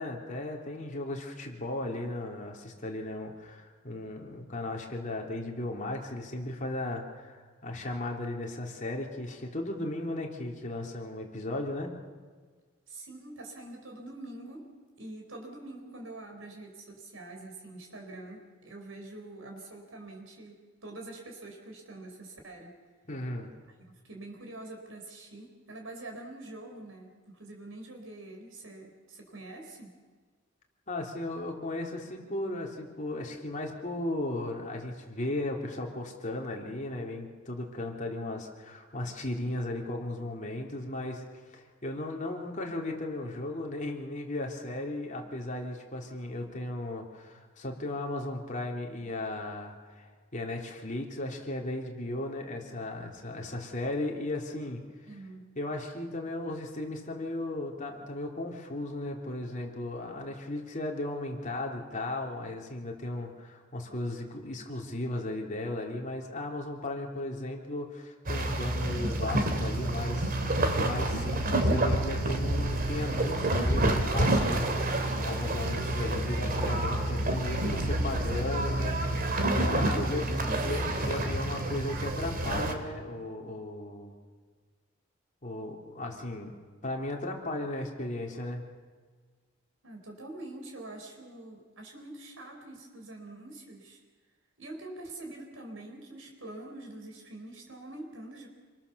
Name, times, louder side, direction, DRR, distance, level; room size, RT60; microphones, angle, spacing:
voice 1, 0.0-11.9 23.1-23.5 30.9-41.2 41.5-54.8 55.6-70.3 70.8-80.2 80.6-84.1 85.4-86.5 86.8-88.6, left 1 dB, 40° left, 1 dB, 3.7 m, -36 dB
voice 2, 12.9-14.7 15.0-22.7 24.0-29.9 55.1-55.5 77.7-78.2 79.8-81.0 89.8-94.0 94.6-98.5, right 2 dB, 75° right, 2 dB, 4.5 m, -45 dB
sound 1, 68.3-82.7, right 1 dB, 45° right, 2.7 m, -28 dB
28.0 x 22.0 x 7.1 m, 1.5 s
head